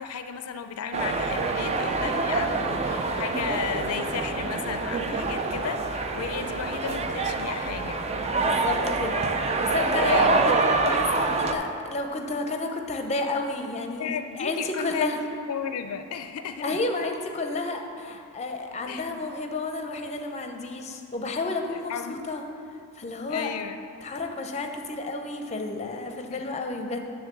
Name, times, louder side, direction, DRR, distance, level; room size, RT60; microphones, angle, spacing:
voice 1, 0.0-8.0 10.0-10.5 14.0-16.8 18.9-19.3 21.9-22.2 23.3-23.8 26.3-26.4, left 6 dB, 75° left, 9 dB, 0.4 m, -34 dB
sound 1, 0.9-11.6, right 3 dB, 30° right, 0.4 m, -26 dB
voice 2, 8.4-9.2 9.6-14.1 14.4-15.2 16.6-22.4 22.9-23.5 24.0-27.0, left 3 dB, 30° left, 4 dB, 0.6 m, -31 dB
9.5 x 3.4 x 6.7 m, 2.6 s
head